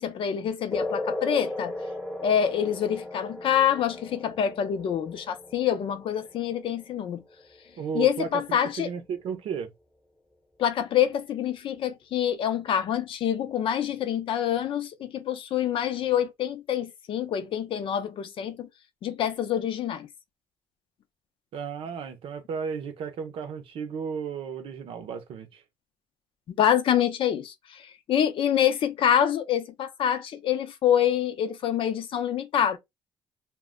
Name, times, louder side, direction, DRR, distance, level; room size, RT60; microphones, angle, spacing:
voice 1, 0.0-1.7 2.2-7.2 7.9-8.9 10.6-18.7 19.0-20.1 26.5-32.8, left 9 dB, 65° left, 0.6 m, -26 dB
sound 1, 0.7-7.7, left 2 dB, 5° left, 0.8 m, -37 dB
voice 2, 7.8-9.7 21.5-25.6, right 6 dB, 70° right, 0.6 m, -34 dB
2.2 x 2.1 x 3.6 m
supercardioid pair, 70°, 10 cm